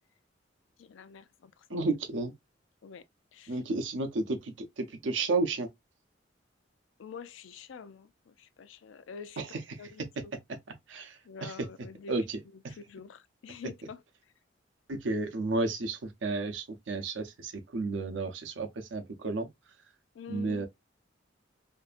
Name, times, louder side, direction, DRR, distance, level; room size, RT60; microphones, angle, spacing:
voice 1, 0.8-1.8 2.8-3.0 3.3-3.6 7.0-9.4 9.8-10.3 11.2-12.2 12.8-14.0 20.1-20.7, left 6 dB, 80° left, 0.4 m, -46 dB
voice 2, 1.7-2.3 3.5-5.7 9.4-9.6 10.5-10.6 10.9-11.7 12.1-12.8 14.9-19.5 20.3-20.7, right 3 dB, 70° right, 0.6 m, -32 dB
2.6 x 2.4 x 2.4 m
head